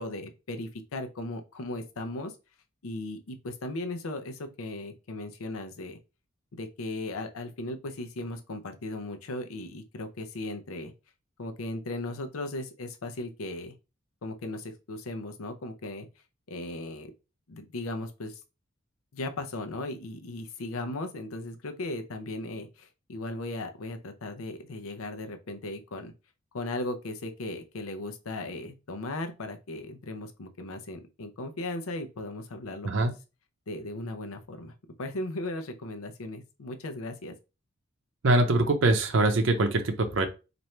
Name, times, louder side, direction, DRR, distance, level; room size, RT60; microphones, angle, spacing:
voice 1, 0.0-2.3 2.8-6.0 6.5-10.9 11.4-13.7 14.2-16.1 16.5-17.1 17.5-18.4 19.1-26.1 26.5-33.1 33.7-34.7 35.0-37.3, left 2 dB, 85° left, 0.6 m, -37 dB
voice 2, 38.2-40.3, right 2 dB, 65° right, 0.6 m, -23 dB
3.1 x 2.6 x 4.3 m
head